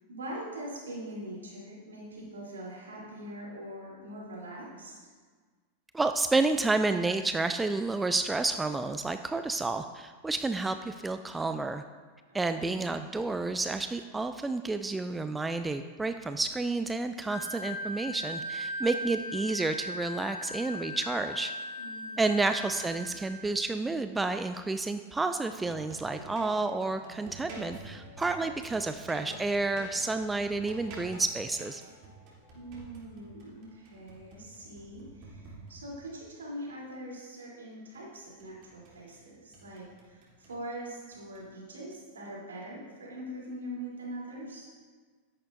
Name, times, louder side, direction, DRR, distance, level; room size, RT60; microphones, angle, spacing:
voice 1, 0.1-5.0 12.5-12.8 21.8-22.3 32.5-44.7, right 1 dB, 70° right, -4 dB, 3.5 m, -42 dB
voice 2, 5.9-11.8 12.3-21.5 22.2-31.8, right 3 dB, 10° right, 9 dB, 0.4 m, -30 dB
Wind instrument woodwind instrument, 17.3-23.4, left 1 dB, 40° left, 3.1 m, -38 dB
sound 1, 25.5-36.2 37.9-39.2 39.5-40.6 41.1-41.4, right 2 dB, 40° right, 3.3 m, -48 dB
13.0 x 11.0 x 2.7 m, 1.5 s
figure-of-eight pair, 90°, 0 cm